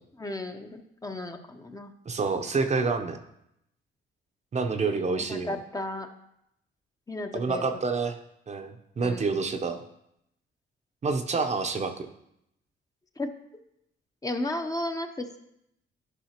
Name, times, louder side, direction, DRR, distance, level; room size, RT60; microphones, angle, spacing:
voice 1, 0.2-1.9 5.1-6.1 7.1-7.6 9.0-9.3 13.2-13.3 14.2-15.4, left 2 dB, 20° left, 5 dB, 0.7 m, -34 dB
voice 2, 2.1-3.2 4.5-5.6 7.3-8.2 8.5-9.8 11.0-12.1, right 4 dB, 35° right, 6 dB, 0.7 m, -28 dB
11.5 x 5.5 x 2.9 m, 0.79 s
cardioid pair, 90°, 20 cm